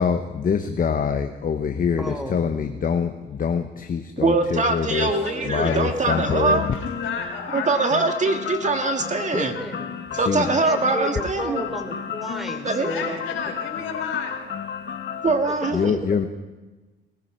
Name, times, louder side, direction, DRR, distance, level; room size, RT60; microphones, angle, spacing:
voice 1, 0.0-5.1 5.4-6.7 10.1-10.5 15.7-16.3, left 6 dB, 45° left, 6 dB, 1.0 m, -24 dB
voice 2, 2.0-2.5 9.3-10.0 10.3-13.2 16.1-16.2, left 1 dB, ahead, 4 dB, 3.3 m, -32 dB
voice 3, 4.2-6.7 7.5-9.5 10.1-11.6 12.6-13.1 15.2-15.9, right 3 dB, 35° right, 5 dB, 1.9 m, -23 dB
voice 4, 4.8-8.4 12.9-14.4, left 6 dB, 85° left, 0 dB, 4.7 m, -33 dB
sound 1, 6.0-15.7, left 7 dB, 60° left, 1.6 m, -33 dB
20.0 x 15.0 x 4.5 m, 1.2 s
cardioid pair, 90°, 20 cm